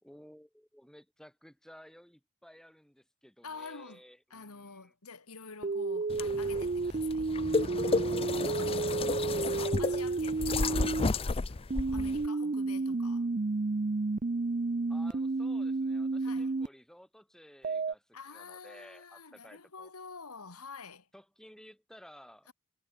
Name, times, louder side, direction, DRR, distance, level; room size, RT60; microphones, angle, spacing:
voice 1, 0.0-4.9 14.9-19.9 21.1-22.5, equal, 5° left, 3.1 m, -55 dB
voice 2, 3.4-4.0 4.3-7.3 7.6-8.1 8.4-10.9 11.3-13.3 16.2-16.5 18.1-21.1 22.5-22.6, left 5 dB, 90° left, 2.4 m, -48 dB
sound 1, 5.6-11.1 11.7-16.7 17.6-17.9, right 3 dB, 35° right, 0.5 m, -31 dB
sound 2, 6.1-12.3, left 3 dB, 25° left, 0.5 m, -32 dB
head